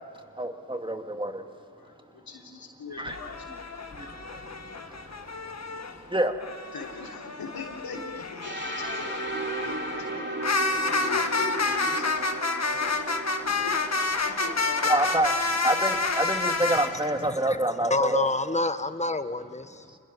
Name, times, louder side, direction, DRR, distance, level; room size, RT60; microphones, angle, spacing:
voice 1, 0.4-1.5 3.0-3.2 3.9-6.3 14.8-18.3 19.9-20.0, right 1 dB, 15° right, 5 dB, 2.2 m, -28 dB
voice 2, 1.8-3.5 6.7-9.2 9.5-10.5 10.8-12.4 12.7-13.8 14.2-15.1, left 4 dB, 70° left, 0 dB, 3.4 m, -41 dB
sound 1, 3.0-5.9 6.4-16.9, left 3 dB, 45° left, 1.8 m, -29 dB
sound 2, 8.4-16.2, right 2 dB, 30° right, 2.9 m, -36 dB
voice 3, 17.2-17.6 17.9-19.9, left 2 dB, 20° left, 11 dB, 1.2 m, -28 dB
27.5 x 21.0 x 6.3 m, 2.5 s
cardioid pair, 50°, 37 cm